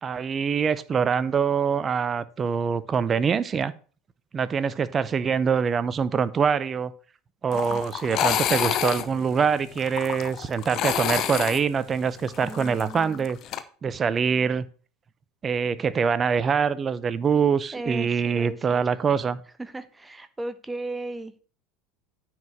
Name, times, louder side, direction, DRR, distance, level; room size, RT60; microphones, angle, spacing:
voice 1, 0.0-3.7 4.3-6.9 7.4-13.4 13.8-14.7 15.4-19.4, right 6 dB, 30° right, 16 dB, 0.7 m, -24 dB
sound 1, 7.5-13.6, left 10 dB, 50° left, 0.9 m, -29 dB
voice 2, 7.5-7.8 12.4-13.3 17.7-18.8 19.6-21.4, right 2 dB, 15° right, 12 dB, 1.0 m, -36 dB
9.3 x 4.8 x 6.5 m, 0.39 s
hypercardioid pair, 75°, 0 cm